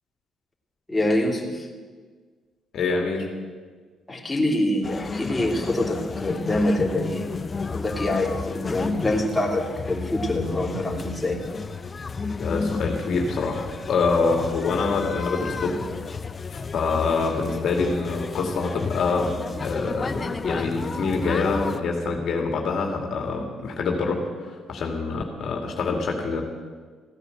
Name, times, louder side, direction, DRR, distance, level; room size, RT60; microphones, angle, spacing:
voice 1, 0.9-1.7 4.1-7.2 7.7-11.4, left 1 dB, 15° left, -1 dB, 3.0 m, -25 dB
voice 2, 2.7-3.3 12.4-15.8 16.5-19.3 19.6-26.4, left 4 dB, 65° left, 2 dB, 2.4 m, -25 dB
sound 1, 4.8-21.8, left 4 dB, 35° left, 0.8 m, -32 dB
16.0 x 9.7 x 7.9 m, 1.5 s
cardioid pair, 80°, 0 cm